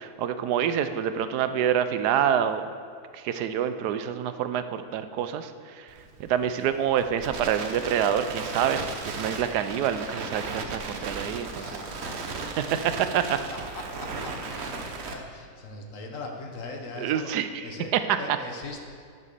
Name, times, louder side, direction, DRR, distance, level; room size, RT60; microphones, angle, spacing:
voice 1, 0.0-2.6 3.1-5.9 6.2-11.8 12.4-13.4 17.0-17.7 17.9-18.0 18.3-18.4, right 9 dB, 85° right, 10 dB, 1.2 m, -27 dB
Crackle, 5.9-15.1, right 3 dB, 50° right, 1.0 m, -36 dB
voice 2, 11.5-12.6 13.5-19.0, left 2 dB, 55° left, 3 dB, 1.3 m, -41 dB
11.0 x 6.1 x 6.7 m, 2.2 s
omnidirectional pair, 1.7 m